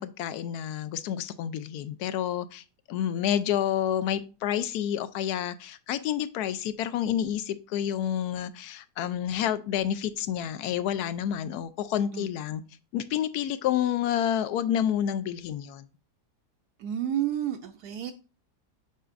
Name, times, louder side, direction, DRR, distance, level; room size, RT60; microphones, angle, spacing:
voice 1, 0.0-12.6 12.9-15.8, left 10 dB, 75° left, 1.1 m, -29 dB
voice 2, 16.8-18.1, right 10 dB, 75° right, 1.1 m, -30 dB
8.0 x 5.0 x 2.5 m
omnidirectional pair, 1.8 m